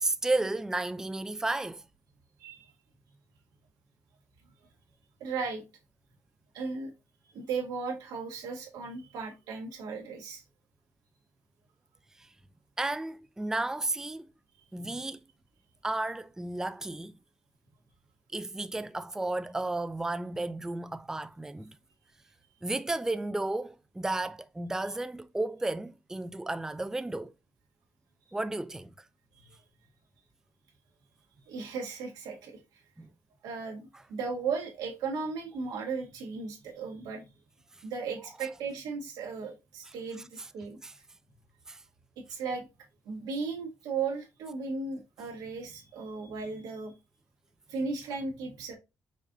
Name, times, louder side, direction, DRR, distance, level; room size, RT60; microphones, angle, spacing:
voice 1, 0.0-1.8 12.8-14.2 14.7-15.2 15.8-17.1 18.3-21.7 22.6-27.3 28.3-28.9 33.0-33.1 40.8-40.9 41.7-41.8, right 2 dB, 10° right, 0.4 m, -33 dB
voice 2, 2.4-2.7 5.2-5.6 6.5-6.9 7.3-10.4 15.0-15.1 29.4-29.6 31.5-32.6 33.4-37.2 37.8-40.8 42.3-42.6 43.0-46.9 47.7-48.7, right 4 dB, 85° right, 1.5 m, -36 dB
5.3 x 2.5 x 3.7 m
cardioid pair, 75°, 6 cm